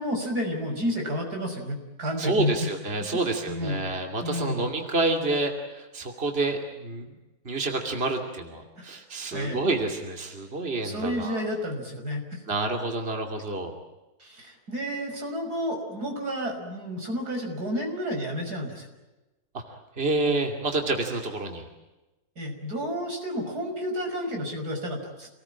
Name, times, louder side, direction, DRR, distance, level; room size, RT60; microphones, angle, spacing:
voice 1, 0.0-2.5 3.5-3.8 4.2-4.6 8.8-8.9 9.3-9.6 10.8-12.4 14.2-18.9 22.4-25.3, equal, 85° right, 2 dB, 6.4 m, -31 dB
voice 2, 2.2-7.1 7.4-11.5 12.5-13.7 19.5-19.6 20.0-21.7, right 2 dB, 40° right, 3 dB, 2.9 m, -28 dB
28.0 x 20.0 x 8.8 m, 1.1 s
omnidirectional pair, 1.6 m